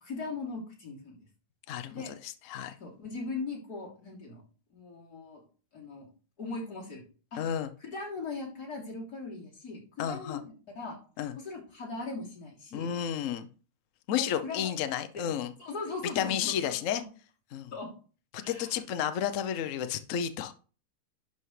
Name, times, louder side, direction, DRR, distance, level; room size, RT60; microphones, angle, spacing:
voice 1, 0.0-1.2 1.9-2.1 2.8-4.4 4.7-5.4 5.7-6.1 6.4-7.0 7.3-7.4 7.8-11.0 11.4-12.9 14.1-14.7 15.1-15.2 15.6-17.0 17.7-17.9 18.4-18.7, left 3 dB, 45° left, -3 dB, 3.6 m, -39 dB
voice 2, 1.7-2.8 7.4-7.7 10.0-10.4 11.2-11.4 12.7-13.5 14.1-15.5 16.1-17.0 17.5-17.7 18.3-20.5, left 9 dB, 85° left, 10 dB, 0.6 m, -32 dB
11.5 x 5.5 x 3.2 m, 0.37 s
omnidirectional pair, 2.2 m